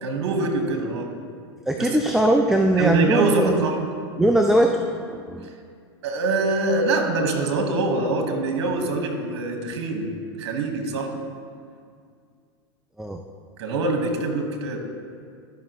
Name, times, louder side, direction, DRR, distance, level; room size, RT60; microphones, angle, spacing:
voice 1, 0.0-1.1 1.8-1.9 2.8-3.8 5.4-5.5 6.0-10.1 10.4-11.2 13.6-14.8, right 3 dB, 65° right, 3 dB, 1.5 m, -24 dB
voice 2, 1.7-3.6 4.2-5.5 13.0-13.2, right 1 dB, 5° right, 4 dB, 0.4 m, -20 dB
12.0 x 5.5 x 3.1 m, 2.2 s
hypercardioid pair, 100°, 14 cm